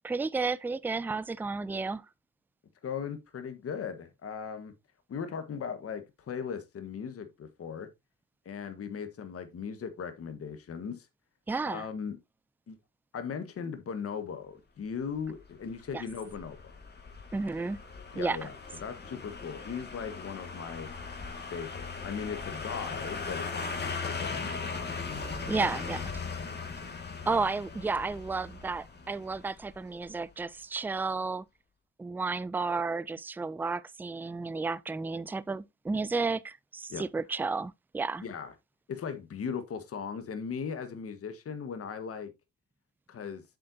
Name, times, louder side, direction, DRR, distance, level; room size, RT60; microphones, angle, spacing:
voice 1, 0.0-2.0 11.5-11.9 15.9-16.0 17.3-17.8 18.2-18.4 25.5-26.0 27.3-31.4 32.0-38.2, right 4 dB, 5° right, 0.4 m, -32 dB
voice 2, 2.8-4.7 5.1-7.9 8.4-11.1 11.7-12.2 12.7-12.8 13.1-16.6 18.1-18.6 18.8-20.9 21.5-24.9 25.6-25.7 36.9-37.0 38.2-38.5 38.9-42.3 43.1-43.4, left 6 dB, 50° left, 1.5 m, -38 dB
sound 1, 15.3-30.2 30.5-30.6, left 4 dB, 35° left, 2.1 m, -39 dB
7.8 x 7.6 x 2.8 m
cardioid pair, 90°, 30 cm